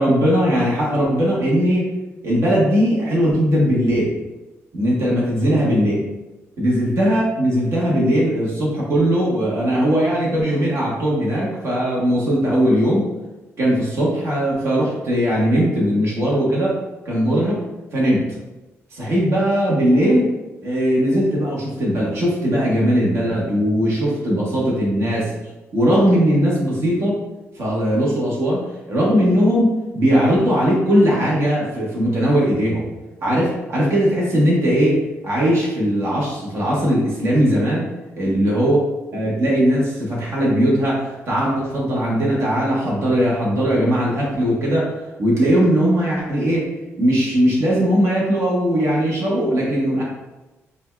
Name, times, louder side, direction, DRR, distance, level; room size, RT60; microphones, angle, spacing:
voice 1, 0.0-1.9 2.2-4.1 4.7-5.9 6.6-13.1 13.6-16.8 17.0-17.6 17.9-18.2 18.9-20.3 20.6-25.3 25.7-27.2 27.6-32.8 33.2-37.9 38.2-38.8 39.1-44.9 45.2-46.7 47.0-50.0, equal, 60° right, -4 dB, 1.1 m, -19 dB
5.1 x 2.3 x 2.2 m, 1.0 s
cardioid pair, 150°, 5 cm